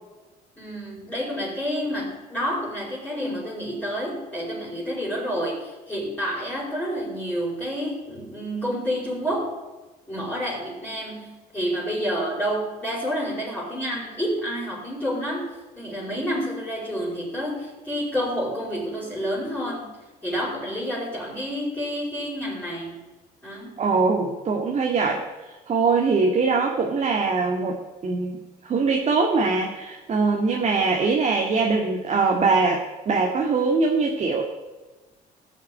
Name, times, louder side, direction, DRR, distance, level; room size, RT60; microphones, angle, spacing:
voice 1, 0.6-9.5 10.1-19.9 20.2-23.0 23.4-23.8 30.5-30.8, equal, 10° left, -8 dB, 5.0 m, -29 dB
voice 2, 23.8-34.4, right 4 dB, 40° right, 1 dB, 1.9 m, -22 dB
17.5 x 6.6 x 8.7 m, 1.2 s
cardioid pair, 110°, 17 cm